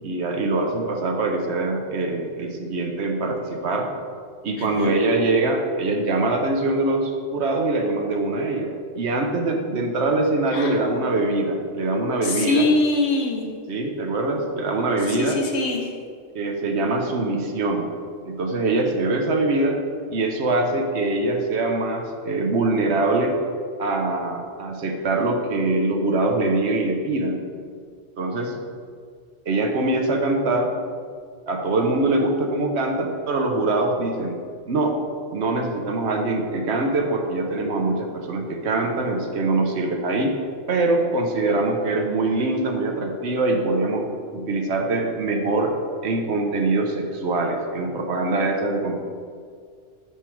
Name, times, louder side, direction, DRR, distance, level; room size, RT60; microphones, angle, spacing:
voice 1, 0.0-3.9 4.4-8.7 9.0-12.7 13.7-15.4 16.3-17.9 18.3-19.8 20.1-23.4 23.8-27.4 28.2-28.6 29.5-30.7 31.5-34.4 34.7-35.0 35.3-40.4 40.7-44.1 44.3-45.8 46.0-49.0, right 2 dB, 65° right, 3 dB, 1.0 m, -23 dB
voice 2, 4.6-4.9 10.5-10.7 12.2-13.4 15.1-15.9, left 2 dB, 65° left, 1 dB, 1.2 m, -23 dB
6.5 x 5.7 x 4.5 m, 2.1 s
omnidirectional pair, 1.3 m